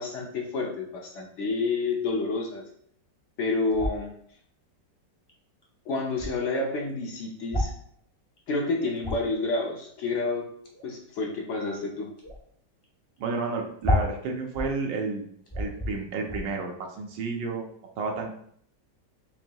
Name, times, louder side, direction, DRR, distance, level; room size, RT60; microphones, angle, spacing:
voice 1, 0.0-2.6 3.4-4.1 5.9-7.7 8.5-10.5 10.8-12.1, left 3 dB, 70° left, 0 dB, 0.7 m, -29 dB
sound 1, 3.7-4.1 5.3-5.4 5.6-5.7 6.0-6.3 7.4-7.8 8.4-8.5 8.7-9.4 10.6-10.8 11.5-11.8 12.2-12.4 12.8-12.9 13.2-13.3 13.8-14.8 15.1-15.2 15.4-15.9 16.2-16.4, left 1 dB, 20° left, 0.6 m, -29 dB
voice 2, 13.2-15.2 15.6-17.7 18.0-18.3, right 4 dB, 85° right, 2 dB, 1.5 m, -31 dB
5.8 x 2.8 x 2.2 m, 0.64 s
omnidirectional pair, 1.9 m